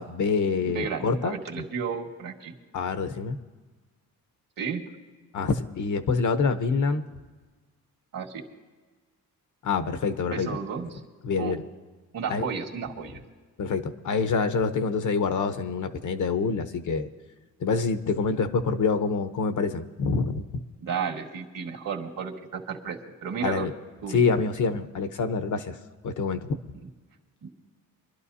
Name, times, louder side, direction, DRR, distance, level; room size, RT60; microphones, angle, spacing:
voice 1, 0.0-1.4 2.7-3.4 5.3-7.0 9.6-10.5 11.2-11.6 12.3-12.5 13.6-17.1 17.6-20.4 23.4-23.7 24.1-25.8 26.0-26.5, left 4 dB, 55° left, 8 dB, 0.9 m, -26 dB
voice 2, 0.6-2.5 4.6-4.8 8.1-8.4 10.3-11.0 11.4-11.5 12.1-13.2 20.8-23.7 24.0-24.2 26.8-26.9 27.4-27.5, right 6 dB, 65° right, 1 dB, 2.0 m, -33 dB
25.0 x 12.0 x 2.8 m, 1.4 s
cardioid pair, 125°, 36 cm